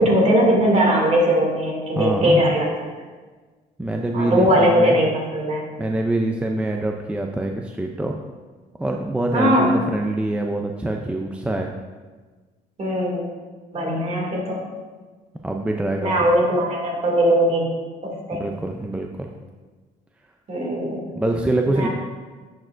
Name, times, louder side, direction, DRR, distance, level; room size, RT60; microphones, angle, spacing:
voice 1, 0.0-2.7 4.1-5.7 9.3-9.7 12.8-13.2 13.7-14.6 16.0-17.7 18.0-18.4 20.5-21.1 21.7-21.9, equal, 40° right, -1 dB, 2.3 m, -19 dB
voice 2, 2.0-2.4 3.8-4.9 5.8-8.2 8.8-11.7 15.4-16.1 18.3-19.3 21.2-21.9, right 1 dB, 5° right, 2 dB, 0.4 m, -24 dB
10.5 x 6.6 x 2.5 m, 1.4 s
cardioid pair, 110°, 17 cm